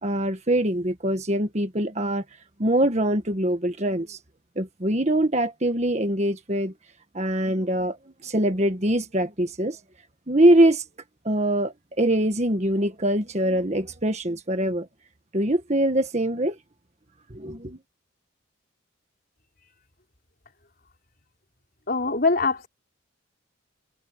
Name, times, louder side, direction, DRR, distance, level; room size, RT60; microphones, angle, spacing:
voice 1, 0.0-2.2 2.6-4.2 4.6-6.7 7.1-8.0 8.2-9.8 10.3-10.8 11.2-14.9 15.3-16.6 17.3-17.8, right 1 dB, 35° right, 1.5 m, -23 dB
voice 2, 21.9-22.7, left 3 dB, 45° left, 4.2 m, -23 dB
head